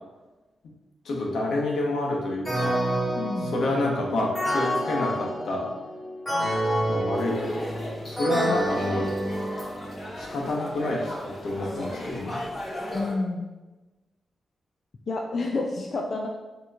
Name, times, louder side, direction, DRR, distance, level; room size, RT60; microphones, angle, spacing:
voice 1, 1.0-2.8 3.5-5.7 6.4-6.5 6.9-7.8 8.1-9.1 10.2-12.4, left 2 dB, 75° left, -2 dB, 1.0 m, -28 dB
sound 1, 2.4-10.1, right 1 dB, 10° left, 1.5 m, -28 dB
voice 2, 3.2-3.6 12.9-13.5 15.1-16.3, left 3 dB, 45° left, 0 dB, 0.3 m, -29 dB
sound 2, 7.1-13.2, left 1 dB, 30° left, 1.0 m, -36 dB
6.7 x 3.0 x 2.4 m, 1.2 s
wide cardioid pair, 155°, 0 cm